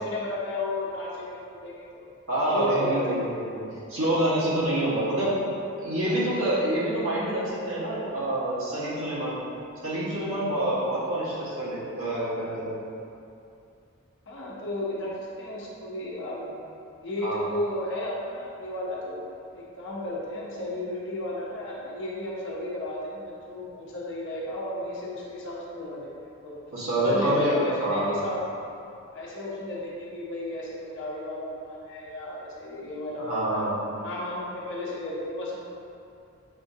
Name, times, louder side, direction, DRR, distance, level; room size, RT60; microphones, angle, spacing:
voice 1, 0.0-2.0 2.5-3.3 4.8-4.9 6.0-6.3 14.3-16.7 17.0-19.2 19.5-26.6 26.9-28.4 29.1-33.6 34.0-35.7, left 1 dB, 60° left, -5 dB, 0.8 m, -34 dB
voice 2, 2.3-3.6 3.9-5.3 5.8-9.4 9.8-12.8 17.2-17.4 26.7-28.2 33.2-33.9, right 1 dB, 75° right, -9 dB, 1.4 m, -27 dB
6.7 x 2.6 x 2.7 m, 2.6 s
head